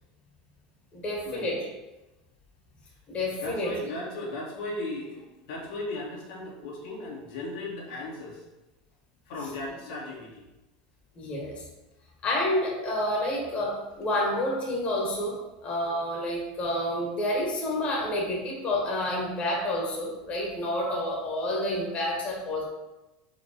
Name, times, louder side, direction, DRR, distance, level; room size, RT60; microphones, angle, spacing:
voice 1, 0.9-1.7 3.1-3.7 11.2-11.5 12.2-22.6, left 1 dB, 30° left, -2 dB, 1.8 m, -29 dB
voice 2, 3.4-8.4 9.3-10.4, left 2 dB, 75° left, -4 dB, 2.2 m, -36 dB
5.0 x 4.0 x 5.7 m, 1.0 s
supercardioid pair, 125°, 4 cm